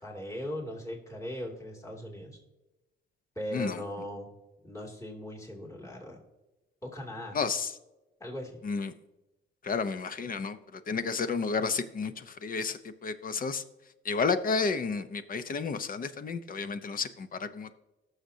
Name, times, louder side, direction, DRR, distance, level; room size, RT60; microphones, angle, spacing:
voice 1, 0.0-2.4 3.4-4.3 4.6-6.2 6.8-7.4 8.2-8.6, equal, 15° left, -2 dB, 2.6 m, -39 dB
voice 2, 7.3-7.7 8.6-8.9 9.6-13.6 14.0-17.7, left 5 dB, 45° left, 12 dB, 0.8 m, -31 dB
18.0 x 6.6 x 2.8 m, 1.0 s
cardioid pair, 90°, 20 cm